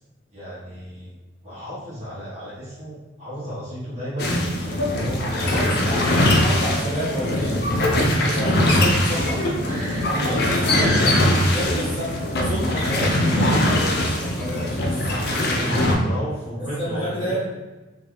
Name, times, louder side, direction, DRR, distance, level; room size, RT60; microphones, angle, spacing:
voice 1, 0.3-1.1 1.4-6.0 8.3-8.6 9.6-10.5 15.5-17.4, equal, 35° right, -8 dB, 0.9 m, -33 dB
sound 1, 4.2-15.9, left 1 dB, 50° left, 0.5 m, -21 dB
voice 2, 5.4-7.6 8.0-9.6 10.0-15.1 16.8-17.5, equal, 25° left, -9 dB, 1.0 m, -30 dB
3.2 x 2.3 x 2.4 m, 1.2 s
head